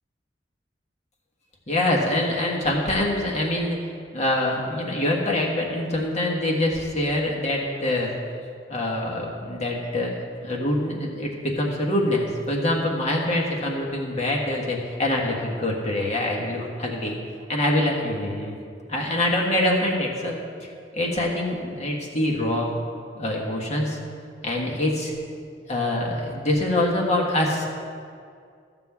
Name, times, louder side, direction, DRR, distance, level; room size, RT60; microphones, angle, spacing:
voice 1, 1.7-3.8 4.1-8.1 8.7-17.2 17.5-18.5 18.9-20.4 20.9-22.7 23.1-24.0 24.4-25.1 25.7-27.7, left 1 dB, 40° left, -2 dB, 1.5 m, -25 dB
14.0 x 7.2 x 3.6 m, 2.2 s
head